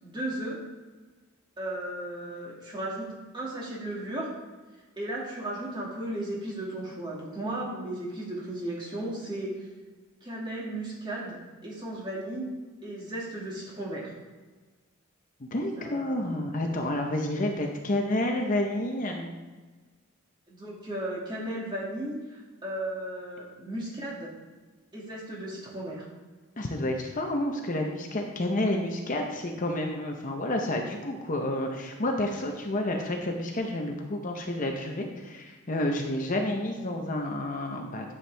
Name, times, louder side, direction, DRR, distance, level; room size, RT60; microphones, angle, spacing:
voice 1, 0.0-0.6 1.6-4.3 5.0-9.7 10.2-12.5 12.8-14.1 15.8-16.2 20.5-24.3 24.9-26.0, right 1 dB, 20° right, -4 dB, 2.1 m, -35 dB
voice 2, 15.4-19.3 26.6-38.1, left 1 dB, 35° left, 2 dB, 0.8 m, -30 dB
10.0 x 7.2 x 3.4 m, 1.3 s
head